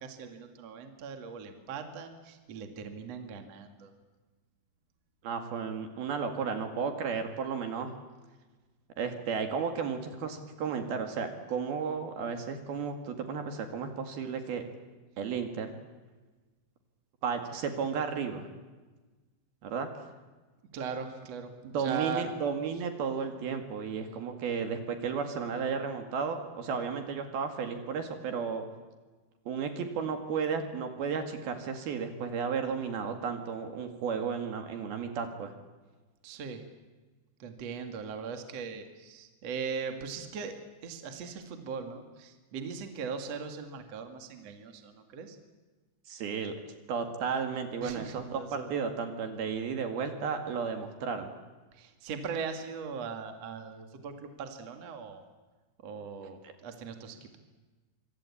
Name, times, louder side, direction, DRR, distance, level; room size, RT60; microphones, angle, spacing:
voice 1, 0.0-3.9 20.7-22.3 36.2-36.6 37.4-40.5 40.8-45.4 47.8-48.7 51.7-55.2 55.8-57.4, right 6 dB, 45° right, 6 dB, 2.5 m, -39 dB
voice 2, 5.2-7.9 9.0-14.6 15.2-15.7 17.2-18.5 19.6-19.9 21.7-28.7 29.5-35.5 46.1-46.5 46.9-51.3, right 6 dB, 60° right, 6 dB, 3.6 m, -33 dB
26.0 x 24.5 x 8.5 m, 1.3 s
omnidirectional pair, 5.4 m